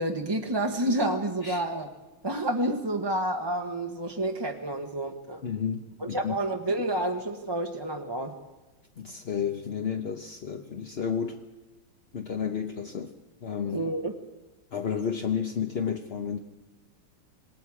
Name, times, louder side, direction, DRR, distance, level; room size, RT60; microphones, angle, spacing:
voice 1, 0.0-1.9 2.2-5.4 6.1-8.3 13.7-14.1, right 1 dB, 15° right, 3 dB, 0.9 m, -29 dB
voice 2, 5.4-6.4 9.0-11.4 12.1-13.1 13.4-13.9 14.7-16.4, left 7 dB, 45° left, 4 dB, 0.9 m, -31 dB
27.0 x 20.0 x 4.8 m, 1.1 s
omnidirectional pair, 2.1 m